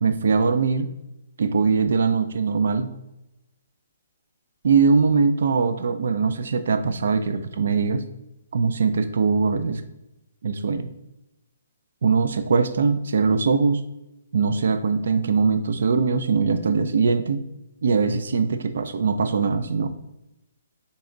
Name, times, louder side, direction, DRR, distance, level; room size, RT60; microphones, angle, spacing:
voice 1, 0.0-0.9 1.4-2.9 4.6-8.0 8.5-9.8 10.4-10.9 12.0-13.8 14.3-17.4 17.8-19.9, right 5 dB, 70° right, 10 dB, 0.4 m, -21 dB
4.1 x 3.4 x 3.7 m, 0.94 s
hypercardioid pair, 155°, 0 cm